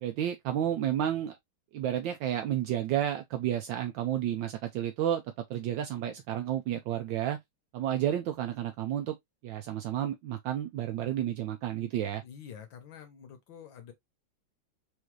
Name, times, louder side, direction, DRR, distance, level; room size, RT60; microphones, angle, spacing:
voice 1, 0.0-1.4 1.7-5.2 5.5-7.4 7.7-9.2 9.4-12.2, right 11 dB, 75° right, 1.3 m, -31 dB
voice 2, 12.2-13.9, left 8 dB, 70° left, 1.8 m, -47 dB
4.9 x 2.6 x 3.1 m
omnidirectional pair, 2.2 m